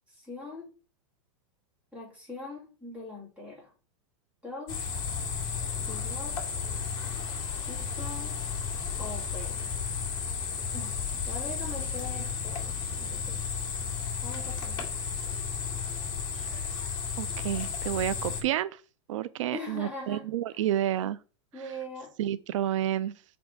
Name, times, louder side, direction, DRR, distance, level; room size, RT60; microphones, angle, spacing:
voice 1, 0.1-0.7 1.9-3.7 4.4-4.9 5.9-6.4 7.5-8.4 9.0-9.6 10.7-11.0 11.3-13.4 14.2-15.0 19.5-20.2 20.5-20.6 21.5-22.1, left 2 dB, 10° right, 2.5 m, -42 dB
sound 1, 4.7-18.4, left 6 dB, 25° left, 2.0 m, -33 dB
voice 2, 17.2-18.7 19.1-21.2 22.2-23.1, right 11 dB, 80° right, 0.4 m, -30 dB
5.8 x 4.3 x 4.5 m
supercardioid pair, 165°, 16 cm